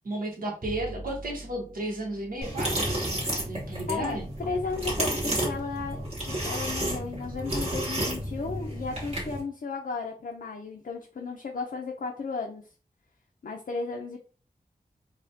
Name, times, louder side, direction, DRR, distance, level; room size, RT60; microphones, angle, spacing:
voice 1, 0.0-4.3, right 1 dB, 65° right, -2 dB, 1.1 m, -34 dB
Bowed string instrument, 0.6-7.1, right 1 dB, 25° right, 0.6 m, -47 dB
sound 1, 2.4-9.4, right 1 dB, 45° right, 1.5 m, -31 dB
voice 2, 3.9-4.2 4.5-12.6 13.4-14.3, left 4 dB, 65° left, 1 dB, 0.5 m, -34 dB
4.1 x 2.2 x 2.7 m, 0.38 s
wide cardioid pair, 85°, 15 cm